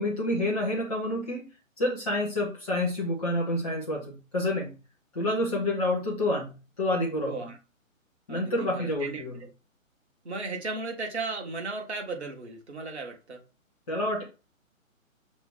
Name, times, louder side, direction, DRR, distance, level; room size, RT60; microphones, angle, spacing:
voice 1, 0.0-1.5 1.8-4.7 5.1-7.4 8.3-9.3 13.9-14.2, left 1 dB, ahead, -4 dB, 0.6 m, -28 dB
voice 2, 7.2-7.6 8.3-9.5 10.2-13.4, right 3 dB, 55° right, 2 dB, 1.4 m, -36 dB
5.8 x 2.1 x 3.7 m, 0.32 s
figure-of-eight pair, 140°, 41 cm